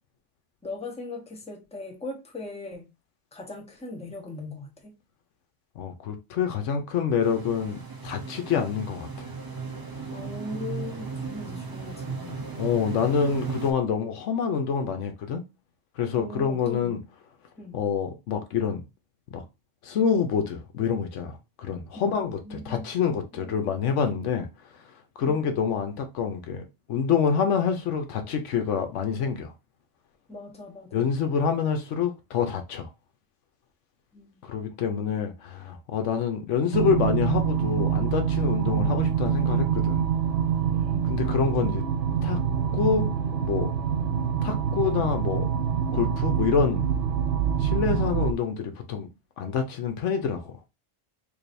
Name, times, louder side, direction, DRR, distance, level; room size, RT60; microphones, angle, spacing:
voice 1, 0.6-2.8 3.3-4.9 10.1-12.5 16.1-17.1 17.6-17.9 21.9-22.9 23.3-23.8 25.3-25.5 30.3-31.2 34.1-35.4 40.7-41.1, left 2 dB, 5° left, 0.8 m, -40 dB
voice 2, 5.8-9.3 12.6-15.4 16.0-17.0 17.7-18.8 19.3-19.4 19.8-24.5 25.2-26.6 26.9-29.5 30.9-32.9 34.4-40.1 41.1-41.8 42.2-42.4 42.7-43.1 43.4-43.7 44.4-45.5 45.9-46.8 47.6-49.1 49.4-50.5, left 6 dB, 80° left, 1.0 m, -27 dB
sound 1, 7.2-13.7, right 5 dB, 25° right, 0.5 m, -36 dB
sound 2, 36.7-48.3, right 8 dB, 65° right, 0.8 m, -25 dB
4.8 x 2.6 x 2.6 m
omnidirectional pair, 1.3 m